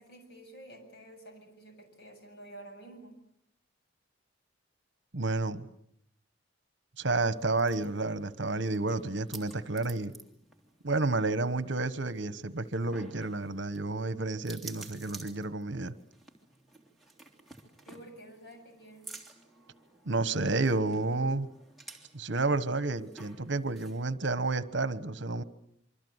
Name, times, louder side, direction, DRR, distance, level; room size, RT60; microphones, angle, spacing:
voice 1, 0.0-3.2 17.9-19.1, right 1 dB, 55° left, 5 dB, 7.5 m, -50 dB
voice 2, 5.1-5.7 7.0-10.1 10.8-15.9 20.0-21.5 22.1-25.4, right 3 dB, 65° right, 13 dB, 1.2 m, -30 dB
sound 1, 7.1-24.1, right 3 dB, ahead, 3.2 m, -53 dB
26.5 x 24.5 x 8.1 m, 0.73 s
head